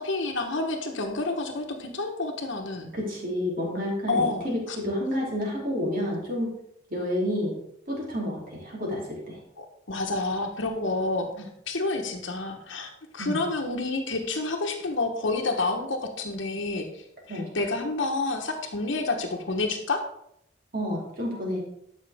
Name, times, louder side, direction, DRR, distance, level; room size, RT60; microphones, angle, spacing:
voice 1, 0.0-2.9 4.1-4.8 9.6-11.3 11.7-16.9 17.3-20.0, left 3 dB, 80° left, 2 dB, 1.1 m, -29 dB
voice 2, 2.9-6.6 6.9-7.6 7.9-9.4 13.2-13.4 17.3-17.5 20.7-21.6, left 1 dB, 45° right, -3 dB, 3.0 m, -29 dB
12.0 x 5.9 x 3.5 m, 0.75 s
head